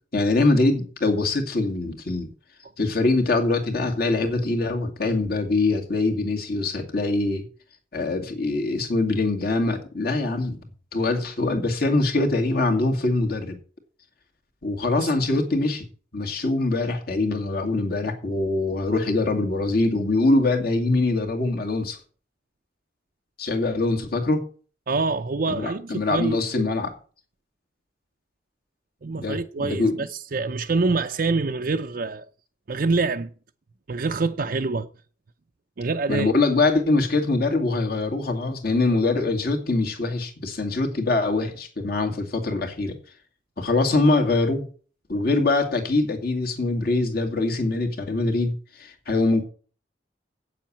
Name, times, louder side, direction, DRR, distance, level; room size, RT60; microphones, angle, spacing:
voice 1, 0.1-2.3 2.8-7.4 7.9-10.6 10.9-13.6 14.6-15.9 16.1-22.0 23.4-24.4 25.5-26.9 29.1-30.0 36.1-43.0 43.6-44.7 45.1-49.4, left 2 dB, 55° left, 2.2 m, -23 dB
voice 2, 24.9-26.7 29.0-32.3 32.7-33.3 33.9-34.9 35.8-36.3, right 3 dB, 50° right, 0.5 m, -26 dB
8.7 x 7.4 x 8.6 m
head